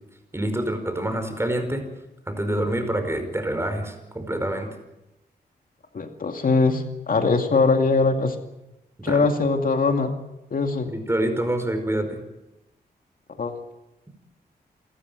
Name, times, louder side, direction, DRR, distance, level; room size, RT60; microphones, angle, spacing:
voice 1, 0.3-1.8 2.3-4.7 9.0-9.3 10.9-12.2, right 1 dB, 15° right, 7 dB, 5.2 m, -26 dB
voice 2, 5.9-8.4 9.0-10.2 10.5-10.9 13.4-13.6, left 4 dB, 55° left, 5 dB, 2.4 m, -21 dB
28.0 x 13.5 x 9.3 m, 0.94 s
cardioid pair, 70°, 17 cm